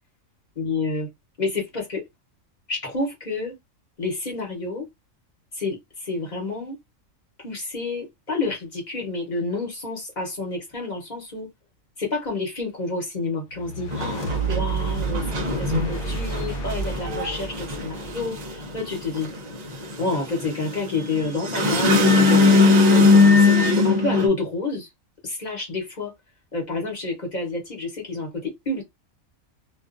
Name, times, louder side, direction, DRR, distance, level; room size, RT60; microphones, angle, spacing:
voice 1, 0.6-1.1 1.4-2.0 2.7-3.6 4.0-4.9 5.5-6.8 7.4-11.5 12.0-19.3 20.0-24.9 25.2-26.1 26.5-28.8, left 3 dB, 35° left, 1.0 m, -29 dB
sound 1, 13.5-18.9, right 5 dB, 65° left, 1.0 m, -30 dB
sound 2, 13.9-24.3, left 3 dB, 45° right, 0.5 m, -19 dB
2.4 x 2.3 x 2.4 m
omnidirectional pair, 1.4 m